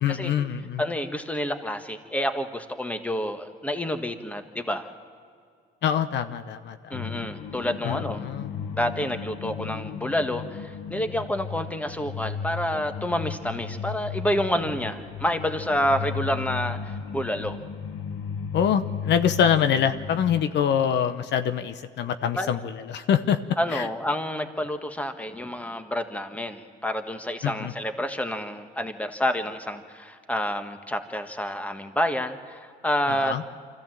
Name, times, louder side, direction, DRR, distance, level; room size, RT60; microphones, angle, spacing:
voice 1, 0.0-0.8 5.8-6.9 7.8-8.5 18.5-22.6 22.9-23.4 23.7-23.9 27.4-27.7 33.1-33.4, left 8 dB, 65° left, 10 dB, 0.9 m, -25 dB
voice 2, 0.8-4.9 6.9-8.2 8.7-17.6 22.3-22.5 23.6-33.3, equal, 5° left, 7 dB, 1.5 m, -28 dB
sound 1, 6.9-20.4, left 6 dB, 80° left, 1.3 m, -35 dB
24.5 x 15.0 x 7.6 m, 2.2 s
cardioid pair, 90°, 20 cm